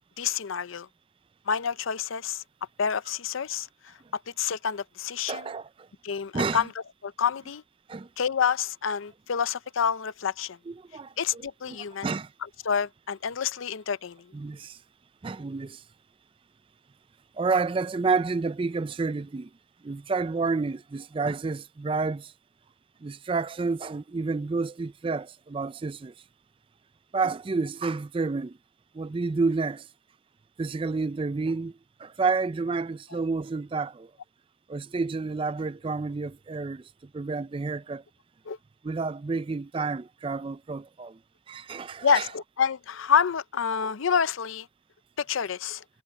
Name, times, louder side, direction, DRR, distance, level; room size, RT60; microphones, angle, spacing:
voice 1, 0.2-0.9 1.5-2.4 2.8-3.7 4.1-5.5 6.0-6.7 7.0-7.6 8.2-10.6 11.2-12.1 12.6-14.3 38.5-38.6 42.0-44.7 45.2-45.8, left 7 dB, 80° left, 0.6 m, -28 dB
voice 2, 5.3-5.7 6.3-6.6 7.9-8.1 10.7-12.3 14.3-14.8 15.2-15.8 17.4-19.5 19.8-22.3 23.0-26.1 27.1-28.6 28.9-29.9 30.6-31.7 32.0-34.1 34.7-36.8 37.1-38.0 38.8-41.2 41.5-42.3, right 4 dB, 25° right, 0.3 m, -29 dB
head